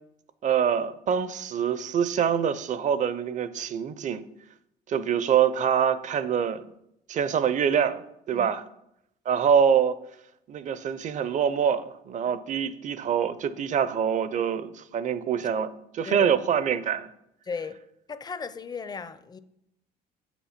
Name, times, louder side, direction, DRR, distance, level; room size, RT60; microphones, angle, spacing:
voice 1, 0.4-4.2 4.9-6.7 7.1-8.6 9.3-10.0 10.5-17.1, right 8 dB, 45° right, 0.6 m, -25 dB
voice 2, 17.5-17.8 18.1-19.4, left 5 dB, 25° left, 0.5 m, -35 dB
7.8 x 6.1 x 5.7 m
cardioid pair, 110°, 17 cm